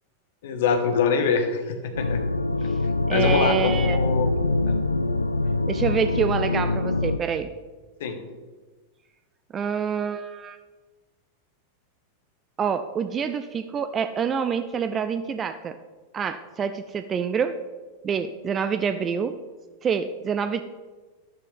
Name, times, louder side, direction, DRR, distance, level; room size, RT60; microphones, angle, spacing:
voice 1, 0.4-2.2 3.1-4.3 4.7-4.8 8.0-8.1, left 5 dB, 55° left, 6 dB, 1.4 m, -24 dB
sound 1, 1.9-7.2, left 2 dB, 85° left, 0.4 m, -24 dB
voice 2, 3.1-4.0 5.7-7.5 9.5-10.6 12.6-15.8 16.1-17.5 18.0-19.3 19.8-20.6, right 7 dB, 25° right, 11 dB, 0.5 m, -26 dB
11.5 x 10.5 x 3.4 m, 1.3 s
figure-of-eight pair, 90°, 0 cm